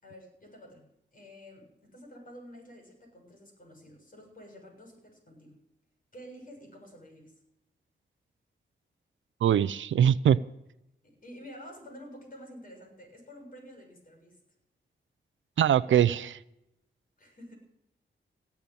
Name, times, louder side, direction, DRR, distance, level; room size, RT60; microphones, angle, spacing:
voice 1, 0.0-5.6 6.1-7.3 11.0-14.4 17.2-17.6, equal, 45° left, 3 dB, 6.9 m, -49 dB
voice 2, 9.4-10.4 15.6-16.4, right 9 dB, 80° right, 17 dB, 0.6 m, -22 dB
18.0 x 7.2 x 9.1 m, 0.84 s
cardioid pair, 70°, 20 cm